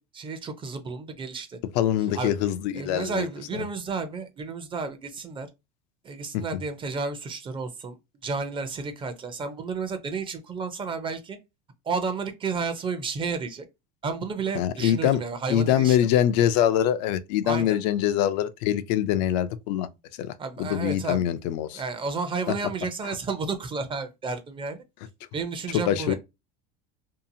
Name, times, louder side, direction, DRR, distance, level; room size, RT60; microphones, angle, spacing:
voice 1, 0.0-1.6 2.1-2.3 2.7-5.5 6.0-11.4 11.8-13.7 14.0-16.1 17.4-17.8 20.4-21.2 21.7-24.8 25.3-26.1, right 4 dB, 25° right, 0.5 m, -32 dB
voice 2, 1.7-3.3 3.5-3.6 6.3-6.6 14.5-15.2 15.5-19.9 20.2-20.3 20.6-21.8 23.0-23.1 25.9-26.1, left 11 dB, 75° left, 0.4 m, -24 dB
2.7 x 2.4 x 2.6 m
supercardioid pair, 125°, 21 cm